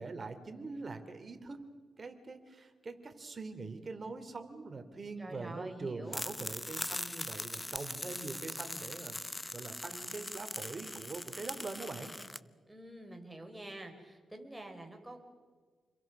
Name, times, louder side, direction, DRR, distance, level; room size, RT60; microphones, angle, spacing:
voice 1, 0.0-1.6 2.0-12.1, right 3 dB, 40° right, 7 dB, 3.0 m, -43 dB
voice 2, 5.2-6.2 12.7-15.2, right 1 dB, 10° right, 3 dB, 4.7 m, -47 dB
sound 1, 6.1-12.4, left 1 dB, 15° left, 0.8 m, -41 dB
29.0 x 22.5 x 6.1 m, 1.5 s
cardioid pair, 90°, 0 cm